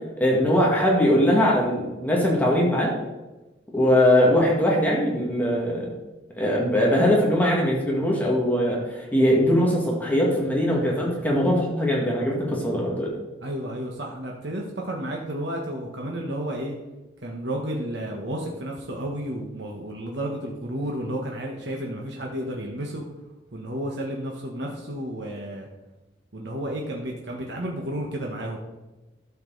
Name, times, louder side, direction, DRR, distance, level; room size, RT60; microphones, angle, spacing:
voice 1, 0.2-2.9 3.7-5.9 6.4-13.1, equal, 10° left, -3 dB, 2.1 m, -21 dB
voice 2, 13.4-16.8 17.2-23.0 23.5-25.7 26.3-28.6, right 1 dB, 65° right, -1 dB, 1.3 m, -32 dB
12.5 x 7.2 x 4.0 m, 1.1 s
head